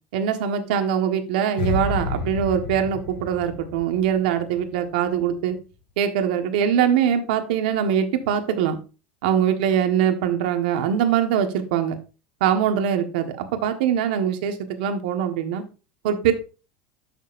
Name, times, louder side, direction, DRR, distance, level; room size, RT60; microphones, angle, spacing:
voice 1, 0.1-5.6 6.0-8.8 9.2-12.0 12.4-15.6 16.0-16.3, right 8 dB, 70° right, 7 dB, 1.4 m, -22 dB
sound 1, 1.6-4.8 5.0-5.3, left 3 dB, 85° left, 3.2 m, -30 dB
12.0 x 6.5 x 2.6 m, 0.33 s
supercardioid pair, 175°, 5 cm